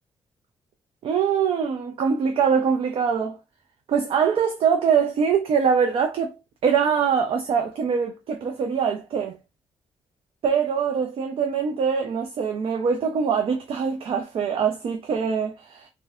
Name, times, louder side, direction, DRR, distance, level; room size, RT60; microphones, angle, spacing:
voice 1, 1.0-3.4 3.9-6.3 6.6-9.4 10.4-15.9, right 6 dB, 60° right, 0.5 m, -23 dB
2.5 x 2.1 x 3.5 m
cardioid pair, 145°, 10 cm